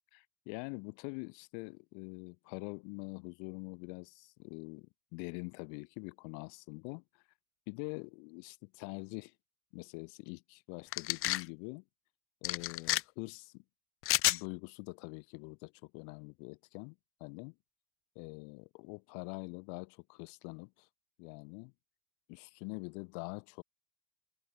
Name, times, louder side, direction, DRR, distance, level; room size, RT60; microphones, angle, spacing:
voice 1, 0.1-7.2 7.7-9.3 9.7-11.8 12.4-13.6 14.3-17.6 18.2-20.9 21.2-21.7 22.3-23.6, left 40 dB or more, 65° left, 5.4 m, -45 dB
sound 1, 10.9-11.4 12.4-13.0 14.0-14.4, left 15 dB, 40° left, 0.7 m, -30 dB
hypercardioid pair, 70°, 32 cm